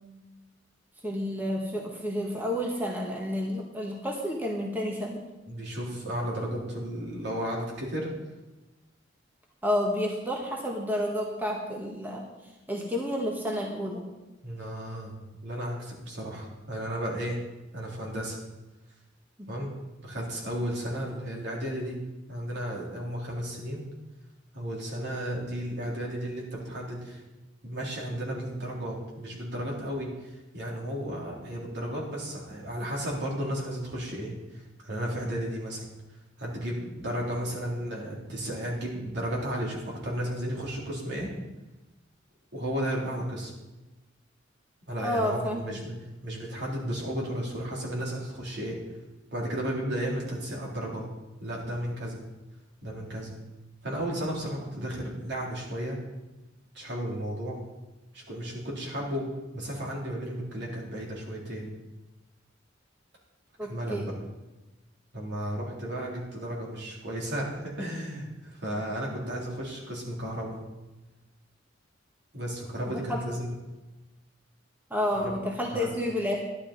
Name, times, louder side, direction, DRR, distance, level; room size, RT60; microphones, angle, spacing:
voice 1, 1.0-5.2 9.6-12.2 12.7-14.0 19.4-19.5 45.0-45.8 63.6-64.1 72.8-73.2 74.9-76.5, equal, 10° right, -2 dB, 1.6 m, -30 dB
voice 2, 5.5-8.1 14.4-15.1 15.4-17.4 17.7-18.4 19.5-19.7 20.0-22.0 22.3-23.9 24.5-27.2 27.6-35.8 36.4-41.3 42.5-43.5 44.9-45.9 46.2-48.8 49.3-51.1 51.4-52.2 52.8-53.3 53.8-56.0 56.7-57.6 58.1-59.3 59.5-61.7 63.7-64.1 65.1-70.6 72.3-73.5 75.2-75.3 75.7-75.9, equal, 65° right, -3 dB, 3.6 m, -33 dB
12.5 x 11.5 x 4.3 m, 1.1 s
head